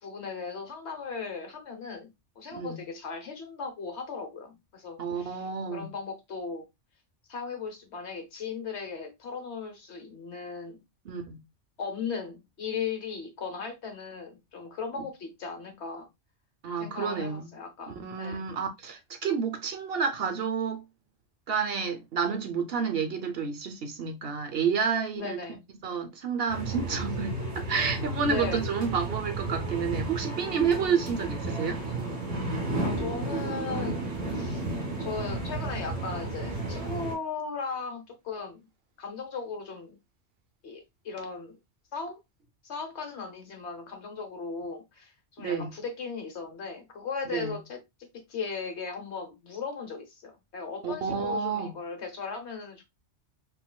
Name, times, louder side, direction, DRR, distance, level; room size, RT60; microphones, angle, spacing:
voice 1, 0.0-5.5 5.7-6.7 7.3-10.8 11.8-16.1 16.8-18.4 25.1-25.7 28.3-28.6 32.8-34.6 35.0-38.7 39.0-40.0 40.6-41.6 41.9-42.2 42.6-47.8 48.1-52.8, left 5 dB, 65° left, 1.3 m, -37 dB
voice 2, 5.0-5.9 11.1-11.4 16.6-17.5 17.9-20.8 21.5-25.4 25.8-27.4 27.7-31.8 45.4-45.8 47.3-47.6 50.8-51.8, right 6 dB, 60° right, 0.8 m, -30 dB
sound 1, 26.5-37.2, right 2 dB, 35° right, 1.9 m, -33 dB
3.9 x 2.7 x 2.2 m
omnidirectional pair, 1.2 m